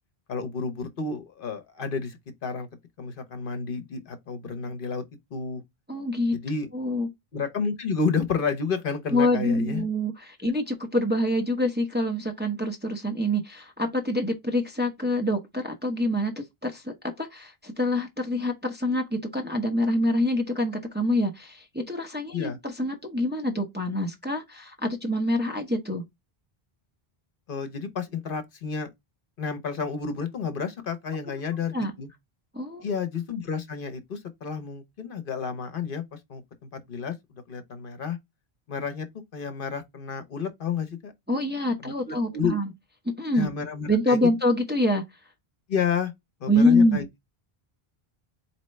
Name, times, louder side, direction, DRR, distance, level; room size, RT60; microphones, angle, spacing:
voice 1, 0.3-2.7 3.0-5.0 5.3-5.6 6.3-6.7 7.3-9.8 10.4-10.5 22.3-22.6 27.5-28.9 29.4-32.1 32.8-36.0 36.3-36.4 36.7-37.1 37.5-38.2 38.7-39.1 39.3-41.1 41.8-42.5 43.3-44.2 45.7-46.1 46.4-47.1, left 5 dB, 60° left, 0.9 m, -30 dB
voice 2, 5.9-6.4 6.7-7.1 9.1-26.0 31.7-31.9 32.5-32.9 41.3-42.7 43.2-43.5 43.9-45.0 46.5-47.0, left 1 dB, 10° right, 0.7 m, -26 dB
4.3 x 2.8 x 3.2 m
omnidirectional pair, 1.0 m